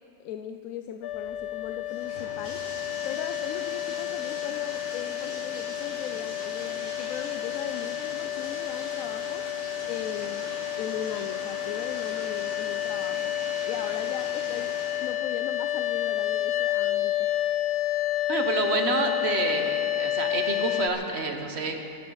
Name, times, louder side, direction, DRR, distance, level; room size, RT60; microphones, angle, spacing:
voice 1, 0.2-2.6 3.0-9.4 9.9-13.3 13.6-17.3, left 9 dB, 70° left, 7 dB, 0.9 m, -38 dB
sound 1, 1.0-20.9, left 13 dB, 90° left, 1.3 m, -30 dB
Bathtub (filling or washing), 1.1-15.2, left 1 dB, 55° left, 3.5 m, -41 dB
voice 2, 18.3-21.8, right 4 dB, 50° right, 5 dB, 1.4 m, -28 dB
23.0 x 11.0 x 4.7 m, 2.6 s
omnidirectional pair, 1.6 m